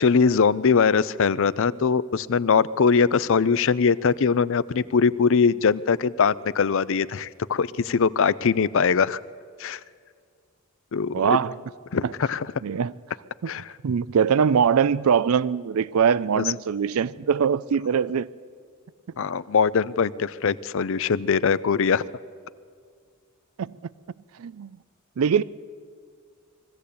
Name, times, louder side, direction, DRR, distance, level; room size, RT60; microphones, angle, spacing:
voice 1, 0.0-9.2 9.6-9.8 10.9-11.4 11.9-12.5 13.5-13.7 16.4-16.5 19.2-22.0, left 5 dB, 65° left, 0.5 m, -22 dB
voice 2, 11.1-11.6 12.0-12.1 12.6-12.9 13.4-13.5 13.8-18.3 23.6-23.7 24.4-24.7 25.2-25.4, right 7 dB, 80° right, 0.4 m, -22 dB
21.5 x 15.0 x 8.5 m
head